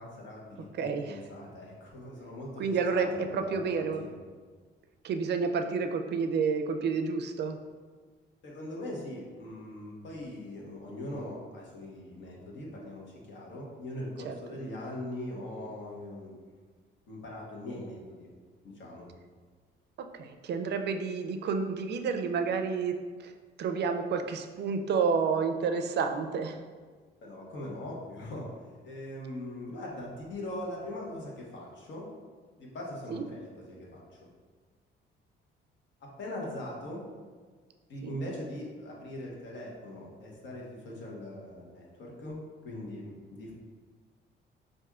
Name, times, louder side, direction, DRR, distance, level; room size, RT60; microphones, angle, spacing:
voice 1, 0.0-2.6 2.9-4.1 8.4-16.3 17.1-18.3 18.6-19.1 27.2-28.5 28.8-32.0 32.6-34.0 36.0-37.0 37.9-42.4 42.6-43.5, left 1 dB, 70° left, -2 dB, 1.1 m, -41 dB
voice 2, 0.8-1.2 2.6-4.0 5.0-7.6 14.2-14.4 20.1-22.9 23.2-23.3 23.6-26.6 33.1-33.2 38.0-38.2, right 5 dB, 60° right, 6 dB, 0.4 m, -30 dB
5.9 x 2.6 x 2.4 m, 1.5 s
cardioid pair, 90°, 20 cm